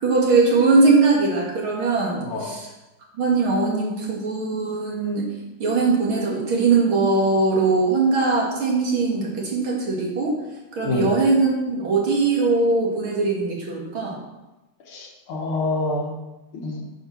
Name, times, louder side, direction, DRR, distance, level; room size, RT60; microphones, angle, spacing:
voice 1, 0.0-2.7 3.2-5.3 5.6-10.3 10.8-14.2, right 3 dB, 70° right, -2 dB, 3.0 m, -20 dB
voice 2, 2.2-2.5 10.8-11.1 14.9-16.1 16.5-16.8, left 2 dB, 85° left, 1 dB, 2.5 m, -27 dB
9.8 x 6.4 x 6.0 m, 1.0 s
omnidirectional pair, 2.3 m